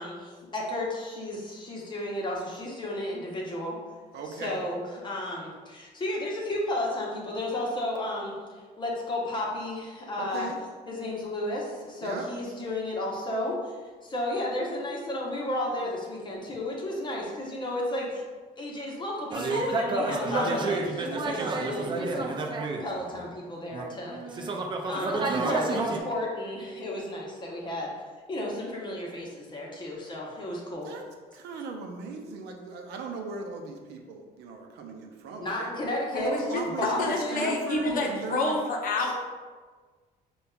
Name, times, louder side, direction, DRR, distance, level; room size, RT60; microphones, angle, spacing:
voice 1, 0.0-3.8 4.2-8.3 8.8-10.5 10.9-13.7 14.0-18.2 18.6-22.5 22.8-24.5 24.8-27.9 28.3-30.9 35.4-36.3 36.8-37.5 37.8-38.1 39.0-39.1, left 1 dB, 25° left, -3 dB, 0.8 m, -33 dB
voice 2, 4.1-4.6 10.2-10.6 12.0-12.2 30.8-31.0 31.3-35.7 36.2-38.6, right 4 dB, 80° right, 2 dB, 0.5 m, -38 dB
sound 1, 19.3-23.3 23.7-26.0, right 3 dB, 30° right, 0.4 m, -29 dB
voice 3, 36.1-39.1, left 2 dB, 55° left, 0 dB, 0.7 m, -28 dB
5.1 x 2.3 x 2.3 m, 1.4 s
cardioid pair, 110°, 17 cm